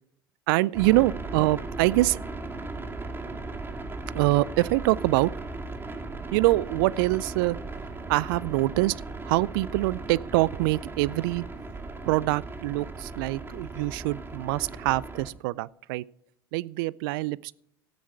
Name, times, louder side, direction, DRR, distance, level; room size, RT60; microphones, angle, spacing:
voice 1, 0.5-2.2 4.1-5.3 6.3-7.6 8.1-9.0 9.3-11.4 12.0-16.0 16.5-17.5, right 20 dB, 70° right, 0.4 m, -25 dB
sound 1, 0.7-15.3, right 3 dB, 20° right, 2.0 m, -37 dB
13.5 x 9.4 x 4.6 m
hypercardioid pair, 80°, 12 cm